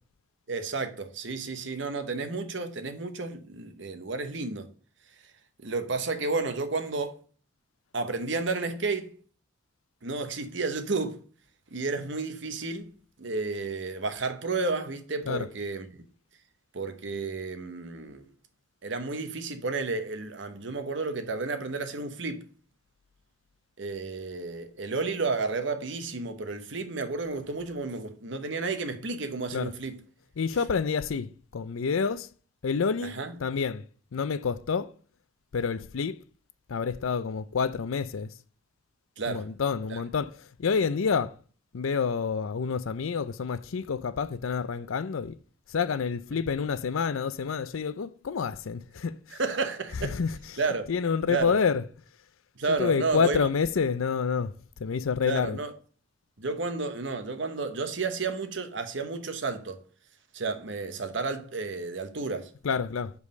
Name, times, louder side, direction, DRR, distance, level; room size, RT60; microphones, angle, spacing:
voice 1, 0.5-4.7 5.6-7.2 7.9-9.2 10.0-11.2 11.7-12.9 13.2-15.9 16.7-18.2 18.8-22.4 23.8-30.0 33.0-33.4 39.2-39.5 39.9-40.0 49.4-50.2 50.6-50.9 51.3-51.5 52.6-53.5 55.2-55.7 56.4-59.8 60.3-62.5, right 3 dB, 65° right, 1.0 m, -32 dB
voice 2, 30.4-32.3 32.6-33.9 34.1-34.9 35.5-36.2 36.7-38.3 39.3-40.3 40.6-41.3 41.7-45.3 45.7-49.4 50.0-50.4 50.9-51.8 52.8-54.5 54.8-55.6 62.6-63.1, left 5 dB, 90° left, 0.5 m, -28 dB
5.3 x 4.8 x 6.4 m
head